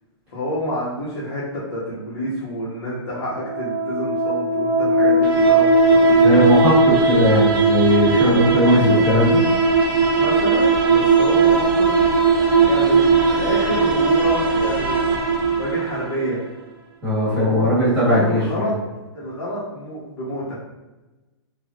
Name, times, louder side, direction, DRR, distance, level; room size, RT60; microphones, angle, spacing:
voice 1, 0.3-6.7 8.2-9.0 10.1-11.9 12.7-15.0 15.6-16.4 17.3-18.7 19.1-20.6, equal, 60° left, -8 dB, 1.1 m, -28 dB
sound 1, 3.3-16.3, right 4 dB, 55° right, 0.7 m, -18 dB
voice 2, 6.1-6.7 7.1-9.4 17.0-18.7, left 1 dB, 10° right, -11 dB, 1.2 m, -18 dB
3.2 x 2.4 x 2.4 m, 1.1 s
hypercardioid pair, 175°, 15 cm